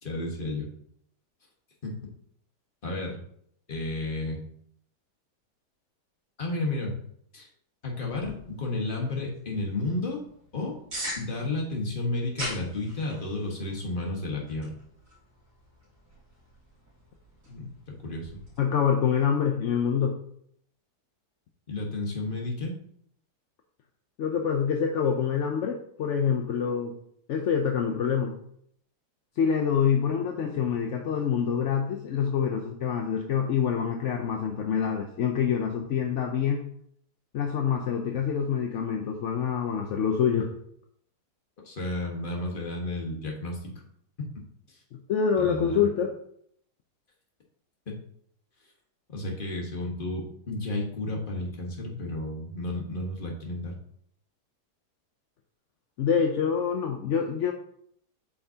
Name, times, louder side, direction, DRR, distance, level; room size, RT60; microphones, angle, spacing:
voice 1, 0.0-0.7 1.8-2.0 2.8-3.2 3.7-4.4 6.4-7.0 7.3-7.5 7.8-10.2 10.5-10.8 11.2-14.7 17.5-17.7 18.0-18.3 21.7-22.7 41.6-43.7 44.7-44.8 45.3-45.8 47.9-48.0 49.1-53.7, left 2 dB, 30° left, -1 dB, 1.5 m, -32 dB
sound 1, 8.0-18.6, equal, 50° right, 3.7 m, -43 dB
voice 2, 18.6-20.1 24.2-26.9 27.3-28.4 29.4-36.6 37.3-40.5 44.9-46.1 56.0-57.5, left 7 dB, 60° left, 3 dB, 0.8 m, -26 dB
8.4 x 5.7 x 2.8 m, 0.69 s
omnidirectional pair, 1.8 m